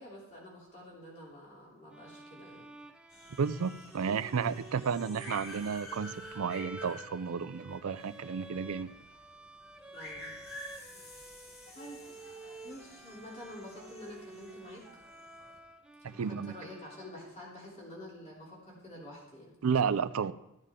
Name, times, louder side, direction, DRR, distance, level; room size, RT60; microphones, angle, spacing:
voice 1, 0.0-2.7 9.9-10.3 11.7-15.0 16.1-19.5, left 1 dB, 35° left, 3.3 m, -48 dB
sound 1, 1.9-17.6, right 2 dB, 5° right, 0.4 m, -51 dB
sound 2, 3.1-15.6, left 1 dB, 75° left, 3.0 m, -50 dB
voice 2, 3.4-8.9 16.0-16.5 19.6-20.3, right 6 dB, 90° right, 0.4 m, -32 dB
14.0 x 9.3 x 3.6 m
head